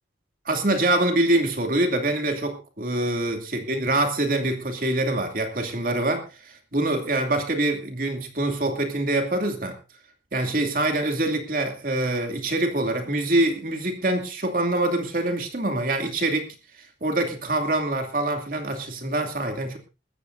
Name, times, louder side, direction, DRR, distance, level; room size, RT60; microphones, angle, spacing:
voice 1, 0.4-9.8 10.3-16.5 16.8-19.8, right 1 dB, 50° right, 5 dB, 2.7 m, -25 dB
21.0 x 14.5 x 2.7 m, 0.29 s
head